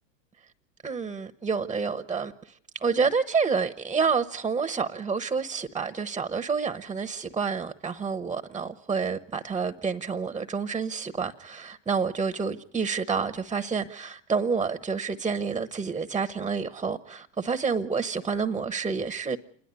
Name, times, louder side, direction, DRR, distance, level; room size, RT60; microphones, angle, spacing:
voice 1, 0.8-2.5 2.8-19.4, right 5 dB, 10° right, 0.8 m, -28 dB
28.0 x 11.0 x 9.7 m
hypercardioid pair, 105°, 40 cm